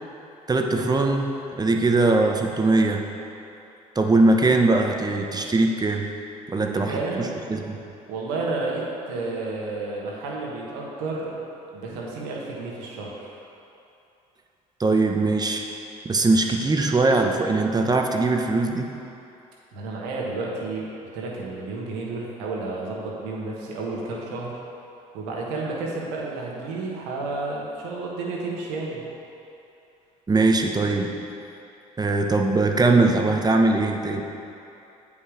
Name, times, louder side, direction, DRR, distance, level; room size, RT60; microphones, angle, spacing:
voice 1, 0.5-3.0 3.9-6.1 6.5-7.8 14.8-15.7 16.0-18.9 30.3-31.1 32.0-34.2, right 3 dB, 20° right, 3 dB, 0.9 m, -21 dB
voice 2, 6.5-7.4 8.1-11.4 11.7-13.4 19.7-20.8 21.1-24.6 25.1-29.0, right 3 dB, 80° right, -3 dB, 1.5 m, -31 dB
8.4 x 5.5 x 4.9 m, 2.8 s
hypercardioid pair, 60°, 18 cm